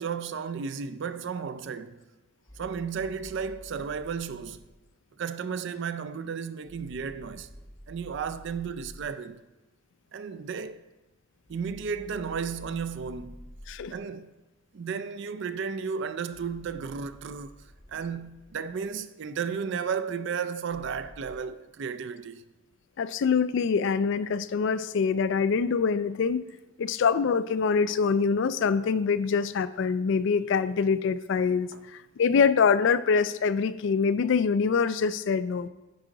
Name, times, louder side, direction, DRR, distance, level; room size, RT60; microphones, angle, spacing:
voice 1, 0.0-2.0 2.6-4.6 5.2-7.5 7.9-9.4 10.1-10.8 11.5-13.5 13.9-14.3 14.7-17.5 17.9-22.4 31.7-31.8, right 6 dB, 60° right, 0.4 m, -33 dB
sound 1, 2.5-4.8 6.7-9.2 11.5-14.1 16.3-18.9 20.7-21.4, equal, 15° left, 1.1 m, -50 dB
voice 2, 23.0-26.4 26.8-35.7, left 5 dB, 60° left, 0.3 m, -25 dB
9.5 x 4.9 x 3.8 m
head